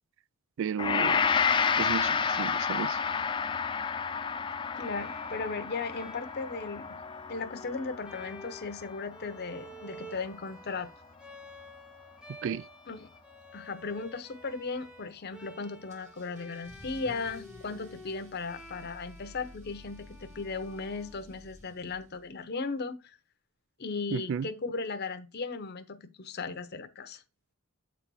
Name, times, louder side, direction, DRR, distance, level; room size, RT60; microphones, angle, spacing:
voice 1, 0.6-1.2 1.8-3.0 12.3-12.7 24.1-24.5, right 7 dB, 60° right, 0.3 m, -33 dB
Gong, 0.8-10.0, left 6 dB, 20° left, 0.3 m, -30 dB
voice 2, 4.7-7.0 7.3-10.9 12.9-13.1 13.5-23.2 23.8-27.2, left 4 dB, 45° left, 0.8 m, -37 dB
Bowed string instrument, 4.8-21.7, equal, 5° right, 0.8 m, -51 dB
Car / Engine starting / Accelerating revving vroom, 15.9-22.4, left 1 dB, 35° right, 1.8 m, -52 dB
8.4 x 4.1 x 4.6 m
head